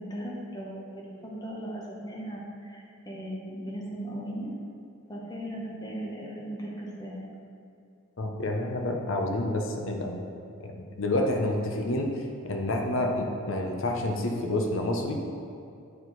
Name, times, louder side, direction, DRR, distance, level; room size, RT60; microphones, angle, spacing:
voice 1, 0.0-4.5 5.1-7.2, right 1 dB, 20° left, -4 dB, 1.0 m, -37 dB
voice 2, 8.2-10.2 10.6-12.1 12.4-15.2, left 1 dB, 70° left, 2 dB, 0.7 m, -28 dB
8.7 x 4.6 x 4.0 m, 2.4 s
head